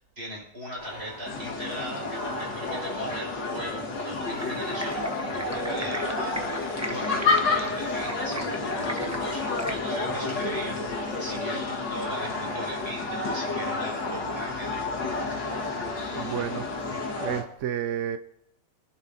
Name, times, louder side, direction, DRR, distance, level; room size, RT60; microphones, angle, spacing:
voice 1, 0.2-15.0, right 1 dB, 35° right, -3 dB, 5.9 m, -39 dB
sound 1, 0.8-17.4, right 1 dB, 25° left, 3.1 m, -37 dB
sound 2, 1.3-17.4, left 4 dB, 75° left, 2.4 m, -31 dB
Stream, 4.3-9.7, right 1 dB, 15° right, 0.5 m, -39 dB
voice 2, 16.2-16.6 17.2-18.2, right 9 dB, 65° right, 10 dB, 0.7 m, -30 dB
26.5 x 11.0 x 2.7 m, 0.75 s
omnidirectional pair, 1.9 m